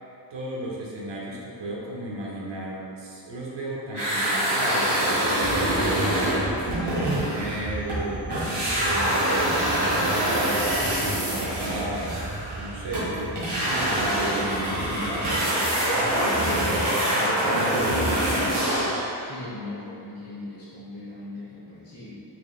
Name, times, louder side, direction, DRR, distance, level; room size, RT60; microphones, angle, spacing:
voice 1, 0.3-5.0 5.5-6.0 6.6-8.3 8.8-10.6 11.0-12.1 12.5-15.7 16.7-18.8, right 1 dB, 85° right, -4 dB, 0.8 m, -34 dB
sound 1, 3.9-8.0 8.3-19.1, right 1 dB, 70° right, 1.2 m, -25 dB
voice 2, 5.4-5.7 19.2-22.2, left 2 dB, 35° left, -12 dB, 1.1 m, -39 dB
sound 2, 5.4-15.4, right 2 dB, 30° right, 0.3 m, -36 dB
4.5 x 3.0 x 2.3 m, 2.7 s
wide cardioid pair, 105°, 42 cm